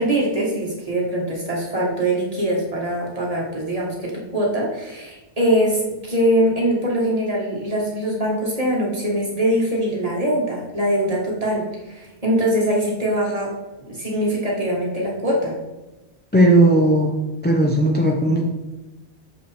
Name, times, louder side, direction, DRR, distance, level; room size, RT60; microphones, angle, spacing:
voice 1, 0.0-13.5 13.9-15.6, right 1 dB, 35° right, -3 dB, 1.7 m, -22 dB
voice 2, 16.3-17.2 17.4-18.4, right 1 dB, 10° left, 0 dB, 0.5 m, -16 dB
6.4 x 5.3 x 3.5 m, 1.0 s
omnidirectional pair, 1.2 m